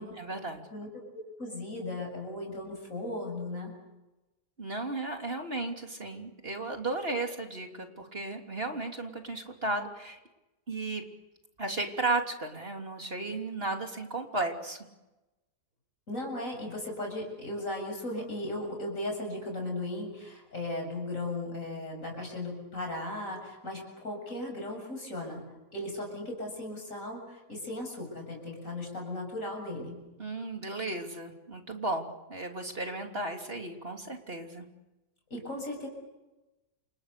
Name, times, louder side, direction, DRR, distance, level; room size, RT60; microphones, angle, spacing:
voice 1, 0.0-0.6 4.6-10.2 10.7-11.1 11.6-14.8 30.2-34.6, right 2 dB, 35° right, 3 dB, 3.4 m, -34 dB
voice 2, 0.7-3.7 16.1-25.4 25.7-30.0 35.3-35.9, left 1 dB, 55° left, 2 dB, 7.9 m, -37 dB
29.5 x 28.0 x 6.8 m, 1.0 s
omnidirectional pair, 1.7 m